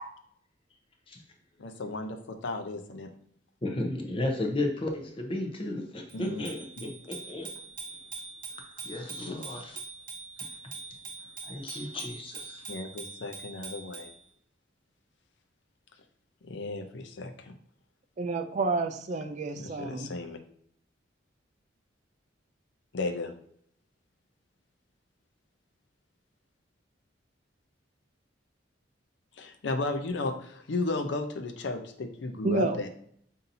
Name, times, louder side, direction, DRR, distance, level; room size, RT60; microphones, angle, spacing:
voice 1, 1.6-3.1 6.1-6.4 6.8-6.9 9.2-9.4 12.7-14.1 16.4-17.5 19.6-20.4 22.9-23.3 29.3-32.9, left 3 dB, 65° left, 7 dB, 0.5 m, -34 dB
voice 2, 3.6-7.5 8.8-9.8 10.4-10.5 11.4-12.7, left 1 dB, 30° left, 2 dB, 0.7 m, -34 dB
Bicycle bell, 6.1-14.2, right 4 dB, 25° right, 1.4 m, -43 dB
voice 3, 18.2-20.1 32.4-32.9, right 3 dB, 40° right, 8 dB, 0.3 m, -29 dB
5.6 x 2.7 x 2.6 m, 0.63 s
head